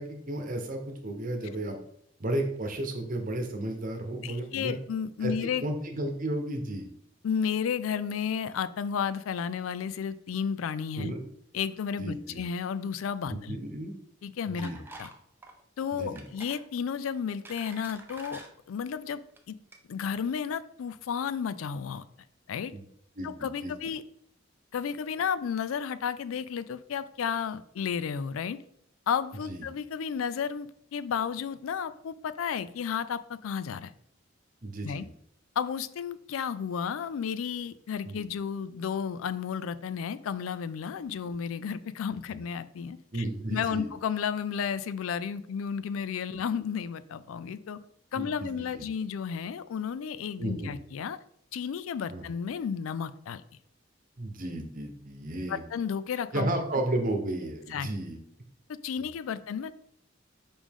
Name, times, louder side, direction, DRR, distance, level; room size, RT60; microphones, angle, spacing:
voice 1, 0.0-1.8 2.2-4.8 5.2-6.9 11.0-11.2 12.0-12.4 13.3-13.9 14.5-14.8 15.9-16.2 22.7-22.8 23.2-23.7 29.5-29.6 34.6-35.0 38.0-38.2 43.1-43.9 48.1-48.8 50.4-50.7 52.1-52.2 54.2-55.6 56.3-58.2 59.0-59.1, right 1 dB, 40° right, 4 dB, 1.0 m, -33 dB
voice 2, 4.2-5.6 7.2-11.1 11.5-13.6 14.2-14.7 15.0-15.1 15.8-19.2 19.5-19.6 19.9-22.1 22.5-22.7 23.2-24.0 24.7-28.6 29.1-33.9 34.8-35.0 35.6-43.0 43.5-47.8 48.1-51.2 51.5-53.4 55.5-56.6 57.7-57.9 58.8-59.7, left 7 dB, 90° left, 15 dB, 0.4 m, -32 dB
sound 1, 14.6-15.2 15.4-15.6 16.2-16.6 17.1-18.5 19.2-19.4 19.7-19.8, right 2 dB, 10° right, 0.6 m, -47 dB
5.1 x 5.0 x 3.6 m, 0.69 s
head